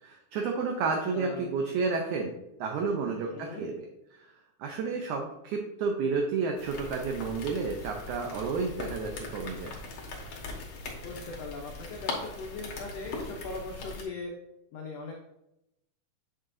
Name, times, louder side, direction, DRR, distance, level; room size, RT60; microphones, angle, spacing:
voice 1, 0.0-2.3 2.6-3.7 4.1-4.3 4.6-9.8, right 4 dB, 75° right, 2 dB, 1.9 m, -31 dB
voice 2, 0.8-1.5 3.3-3.7 11.0-14.3 14.7-15.1, left 3 dB, 90° left, 0 dB, 1.4 m, -40 dB
sound 1, 6.6-14.0, left 3 dB, 60° left, 2.2 m, -40 dB
8.7 x 6.5 x 2.6 m, 0.88 s
omnidirectional pair, 4.0 m